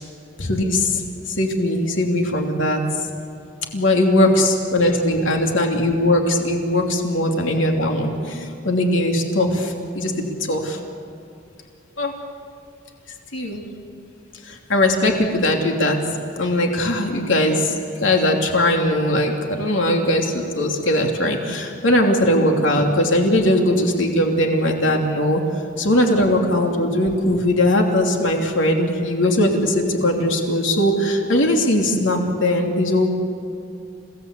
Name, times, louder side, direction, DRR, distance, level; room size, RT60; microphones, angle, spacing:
voice 1, 0.4-2.8 3.7-10.8 12.0-12.1 13.3-13.6 14.4-16.0 16.4-17.7 18.0-33.1, left 1 dB, 80° left, 2 dB, 3.0 m, -20 dB
29.5 x 17.5 x 8.3 m, 2.6 s
head